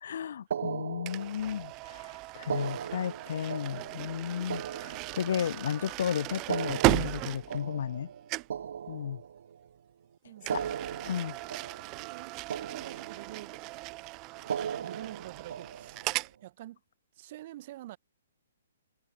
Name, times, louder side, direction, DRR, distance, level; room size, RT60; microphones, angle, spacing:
voice 1, 0.0-2.1 2.3-8.1 8.9-9.2 10.5-10.6 11.0-11.4, left 8 dB, 60° left, 0.4 m, -33 dB
sound 1, 0.5-1.7 2.4-5.7 6.4-9.7 10.4-12.2 12.5-13.6 14.4-16.2, right 8 dB, 65° right, 1.3 m, -38 dB
sound 2, 1.1-8.0 8.3-8.6 10.4-16.3, right 24 dB, 25° right, 1.0 m, -36 dB
voice 2, 10.2-11.0 12.0-14.0 14.8-16.8 17.1-18.0, right 15 dB, 40° right, 5.0 m, -47 dB
hypercardioid pair, 155°, 0 cm